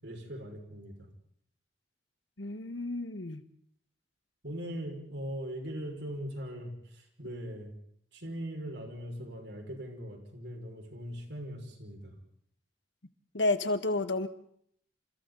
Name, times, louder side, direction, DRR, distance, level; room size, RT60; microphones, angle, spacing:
voice 1, 0.0-1.1 4.4-7.7 8.1-12.1, equal, 70° right, 3 dB, 5.9 m, -40 dB
voice 2, 2.4-3.4 13.3-14.3, left 2 dB, 85° left, 10 dB, 1.7 m, -30 dB
29.0 x 28.5 x 4.2 m, 0.66 s
head